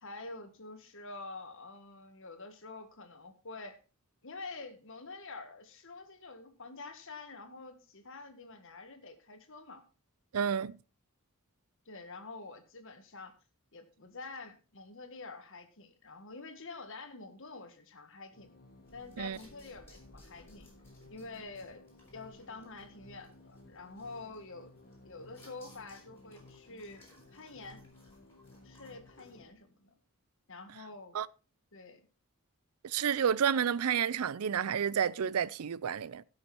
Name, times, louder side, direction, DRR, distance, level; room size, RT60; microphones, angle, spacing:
voice 1, 0.0-3.8 4.2-9.8 11.9-13.4 13.7-18.5 18.9-20.7 21.1-24.7 25.0-27.1 27.3-27.8 28.6-29.9 30.5-31.3 31.7-32.0, left 3 dB, 60° left, 1.8 m, -47 dB
voice 2, 10.3-10.8 19.2-19.4 31.1-31.3 32.8-36.2, right 7 dB, 75° right, 0.5 m, -30 dB
sound 1, 18.3-29.5, left 2 dB, 45° left, 1.8 m, -57 dB
sound 2, 18.8-29.4, left 1 dB, 10° left, 5.0 m, -62 dB
16.5 x 6.4 x 4.4 m
head